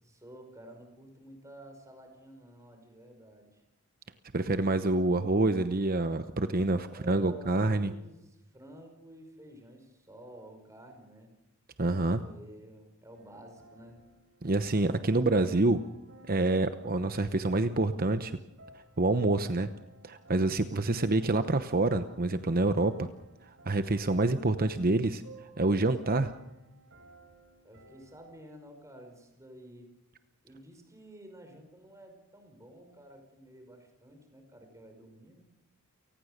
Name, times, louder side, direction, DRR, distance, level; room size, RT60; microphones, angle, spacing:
voice 1, 0.0-3.6 6.9-11.3 12.1-14.0 27.6-29.9 30.4-35.4, right 1 dB, 15° right, 5 dB, 5.3 m, -51 dB
voice 2, 4.3-7.9 11.8-12.2 14.4-15.8 16.3-18.3 19.0-19.7 20.0-23.1 23.7-25.2 25.6-26.3, right 2 dB, 40° right, 10 dB, 0.9 m, -27 dB
sound 1, 13.1-28.4, right 1 dB, 60° right, 4.6 m, -58 dB
29.0 x 19.0 x 6.6 m, 0.95 s
head